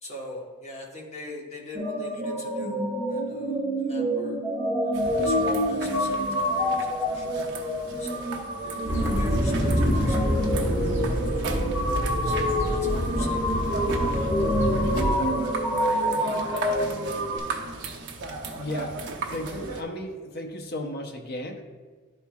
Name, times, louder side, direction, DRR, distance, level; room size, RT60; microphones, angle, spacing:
voice 1, 0.0-4.4 4.8-6.5 6.7-7.5 8.0-10.8 11.3-11.6 11.9-13.8, left 2 dB, 30° left, -2 dB, 1.2 m, -42 dB
sound 1, 1.7-17.4, equal, 5° left, 1.1 m, -27 dB
sound 2, 4.9-19.8, right 3 dB, 55° right, 0.8 m, -37 dB
sound 3, 8.9-15.1, equal, 10° right, 1.8 m, -26 dB
voice 2, 18.6-19.0 19.3-21.6, left 1 dB, 45° left, 3 dB, 0.7 m, -34 dB
10.5 x 4.4 x 2.3 m, 1.4 s
head